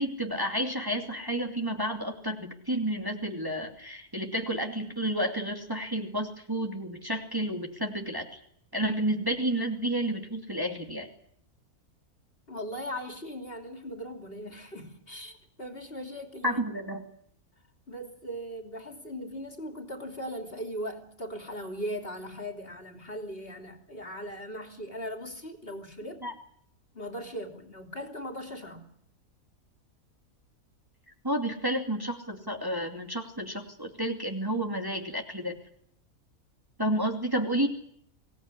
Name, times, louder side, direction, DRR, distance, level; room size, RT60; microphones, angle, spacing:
voice 1, 0.0-8.4 8.7-11.1 16.4-17.0 26.2-26.3 31.2-35.6 36.8-37.7, right 1 dB, 15° right, 3 dB, 2.6 m, -31 dB
voice 2, 12.5-16.6 17.9-26.2 26.9-28.9, equal, 40° left, 5 dB, 3.2 m, -39 dB
24.5 x 18.5 x 10.0 m, 0.68 s
omnidirectional pair, 1.5 m